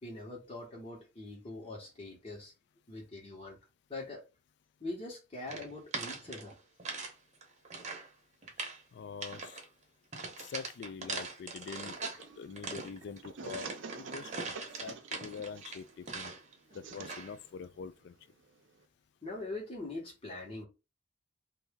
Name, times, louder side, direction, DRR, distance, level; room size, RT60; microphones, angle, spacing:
voice 1, 0.0-2.5 2.9-3.6 3.9-4.2 4.8-6.5 14.8-14.9 16.7-16.8 19.2-20.6, left 2 dB, 30° left, 1.3 m, -43 dB
sound 1, 5.5-7.1 7.4-8.1 8.4-8.8 9.2-9.6 10.1-12.2 12.6-16.5 16.9-17.3, right 4 dB, 40° right, 0.9 m, -41 dB
voice 2, 8.9-9.6 10.4-12.0 12.4-13.7 13.9-14.3 14.8-16.3 16.7-18.2, left 6 dB, 60° left, 0.3 m, -44 dB
sound 2, 12.2-18.9, right 4 dB, 75° right, 0.6 m, -49 dB
2.8 x 2.6 x 3.5 m
head